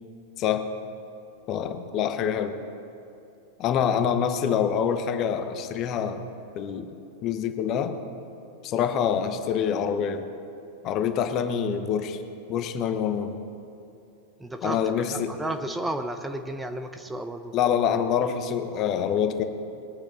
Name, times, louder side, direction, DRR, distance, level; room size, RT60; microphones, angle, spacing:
voice 1, 1.5-2.6 3.6-6.2 6.5-6.9 7.2-8.0 8.6-10.2 10.8-12.2 12.5-13.3 14.6-15.3 17.5-19.4, left 8 dB, 35° left, 8 dB, 1.0 m, -26 dB
voice 2, 14.4-17.5, right 1 dB, 5° right, 6 dB, 0.7 m, -33 dB
22.0 x 8.5 x 4.1 m, 2.7 s
figure-of-eight pair, 90°, 0 cm